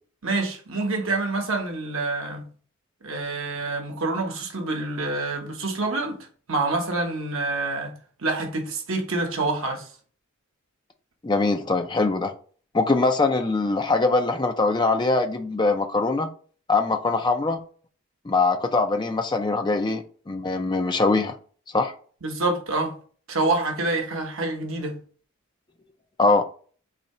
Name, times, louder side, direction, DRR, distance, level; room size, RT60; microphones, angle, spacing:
voice 1, 0.2-2.5 3.0-6.2 6.5-9.9 22.2-23.0 23.3-25.0, right 2 dB, 70° right, 1.0 m, -27 dB
voice 2, 11.2-12.3 12.7-16.3 16.7-17.6 18.3-21.3 21.7-21.9 26.2-26.4, left 3 dB, 20° left, 0.4 m, -22 dB
4.1 x 2.8 x 4.2 m
head